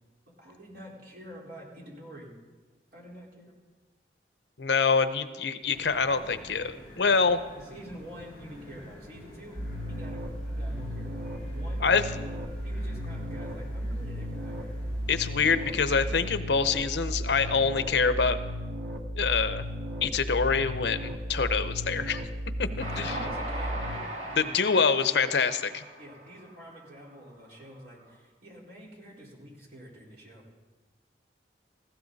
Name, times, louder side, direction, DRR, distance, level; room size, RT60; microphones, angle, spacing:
voice 1, 0.4-2.3 2.9-3.5 7.5-9.6 9.9-11.1 11.5-12.1 12.6-14.6 22.6-25.4 26.0-30.4, equal, 55° right, -4 dB, 4.5 m, -47 dB
voice 2, 4.6-7.4 11.8-12.0 15.1-18.4 19.1-19.6 20.0-22.2 22.6-23.2 24.4-25.8, left 5 dB, 80° left, 11 dB, 0.8 m, -25 dB
sound 1, 5.6-16.3, equal, 10° left, 6.6 m, -48 dB
sound 2, 9.6-24.0, equal, 80° right, 1.3 m, -35 dB
Train, 22.8-27.2, right 1 dB, 40° right, 2.4 m, -39 dB
18.5 x 15.5 x 4.1 m, 1.3 s
head